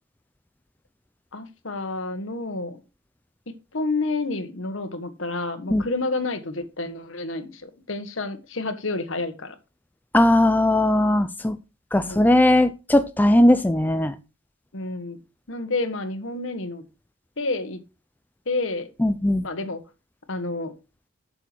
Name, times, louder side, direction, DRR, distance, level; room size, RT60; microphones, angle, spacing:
voice 1, 1.3-2.8 3.7-9.5 12.1-12.3 14.7-15.2 15.5-16.8 17.4-17.8 18.4-18.9 19.4-19.8 20.3-20.7, left 2 dB, 70° left, 1.5 m, -29 dB
voice 2, 10.1-11.6 11.9-14.1 19.0-19.5, left 1 dB, 10° left, 0.4 m, -18 dB
8.1 x 6.9 x 4.5 m
head